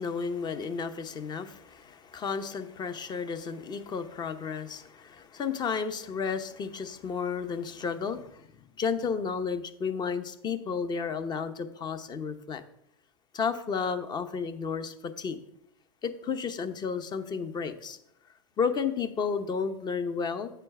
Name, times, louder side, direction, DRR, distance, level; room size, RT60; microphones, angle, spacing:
voice 1, 0.0-8.4 8.8-12.6 13.3-15.4 16.0-18.0 18.6-20.5, left 5 dB, 30° left, 10 dB, 0.9 m, -32 dB
9.0 x 4.4 x 5.4 m, 0.76 s
hypercardioid pair, 100°, 14 cm